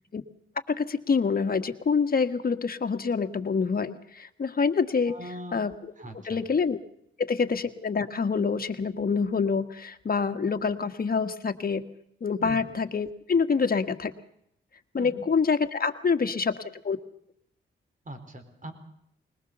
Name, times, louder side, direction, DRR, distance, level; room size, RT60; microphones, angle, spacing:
voice 1, 0.7-5.1 5.5-5.9 6.2-6.8 7.2-11.8 12.2-14.1 14.9-17.0, left 5 dB, 45° left, 7 dB, 1.5 m, -26 dB
voice 2, 5.1-5.6 6.0-6.4 12.4-12.6 14.9-15.2 18.0-18.7, equal, 40° right, 8 dB, 4.3 m, -41 dB
21.0 x 20.0 x 6.8 m, 0.74 s
cardioid pair, 65°, 21 cm